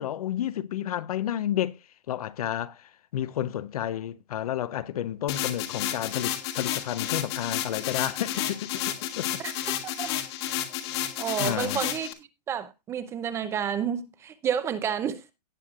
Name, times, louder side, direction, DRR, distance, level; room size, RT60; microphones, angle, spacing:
voice 1, 0.0-1.8 2.1-9.3 11.4-11.8, left 11 dB, 60° left, 0.8 m, -31 dB
sound 1, 5.3-12.1, left 11 dB, 40° left, 1.5 m, -31 dB
voice 2, 9.4-10.1 11.2-15.3, right 8 dB, 10° right, 0.6 m, -30 dB
18.0 x 6.5 x 2.5 m
hypercardioid pair, 160°, 21 cm